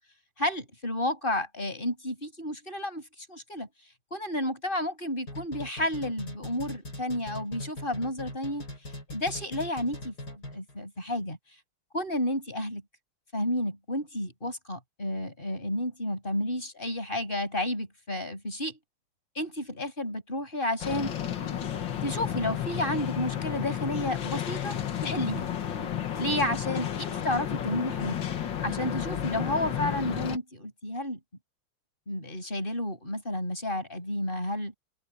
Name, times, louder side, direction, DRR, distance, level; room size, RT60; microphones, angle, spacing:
voice 1, 0.4-3.7 4.1-8.7 9.1-11.4 11.9-12.8 13.3-18.8 19.4-21.2 22.0-24.8 25.0-25.5 26.2-28.2 28.6-31.2 32.1-34.7, left 1 dB, 25° left, 7.0 m, -31 dB
sound 1, 5.3-10.8, left 1 dB, 50° left, 6.7 m, -40 dB
sound 2, 20.8-30.4, left 10 dB, 65° left, 2.1 m, -32 dB
open air
omnidirectional pair, 2.3 m